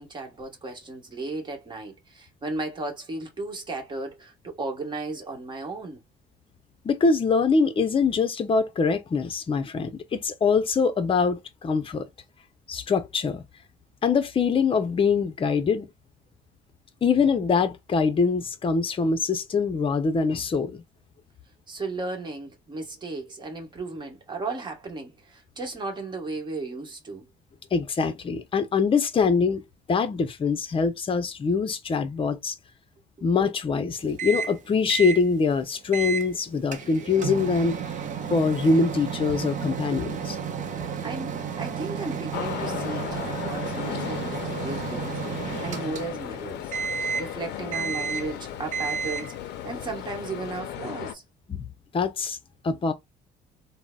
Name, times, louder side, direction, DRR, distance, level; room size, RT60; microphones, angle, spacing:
voice 1, 0.0-6.0 21.7-27.2 41.0-46.7 47.2-51.2, right 3 dB, 25° right, 1.2 m, -35 dB
voice 2, 6.8-12.1 12.7-13.4 14.0-15.9 17.0-20.8 27.7-29.6 29.9-32.5 33.2-37.8 38.3-40.4 51.5-51.7 51.9-52.4 52.6-52.9, left 5 dB, 30° left, 0.6 m, -24 dB
Microwave oven, 34.2-34.6 34.9-35.2 35.9-36.3 36.7-46.4 46.7-47.4 47.7-48.4 48.7-49.4, right 6 dB, 50° right, 0.6 m, -32 dB
sound 1, 42.3-51.1, left 11 dB, 80° left, 0.5 m, -35 dB
3.7 x 2.1 x 2.3 m
cardioid pair, 110°, 17 cm